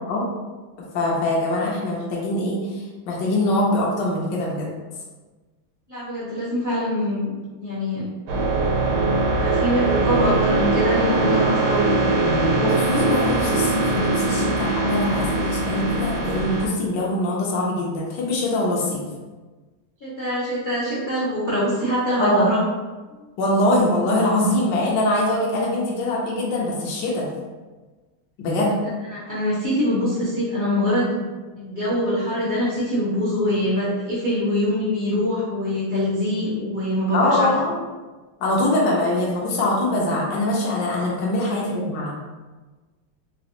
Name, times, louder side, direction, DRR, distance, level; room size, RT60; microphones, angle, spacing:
voice 1, 0.8-4.7 12.6-19.1 22.2-22.5 23.4-27.3 28.4-28.8 37.1-37.7 38.4-42.1, left 1 dB, 70° left, -4 dB, 1.1 m, -23 dB
voice 2, 5.9-7.3 7.6-8.1 9.3-12.5 20.0-22.6 23.1-23.3 29.1-31.2 31.6-37.5 41.4-41.6, left 1 dB, 90° left, -10 dB, 0.4 m, -24 dB
sound 1, 8.3-16.7, right 3 dB, 90° right, 1.6 m, -21 dB
4.0 x 2.4 x 2.8 m, 1.3 s
omnidirectional pair, 2.3 m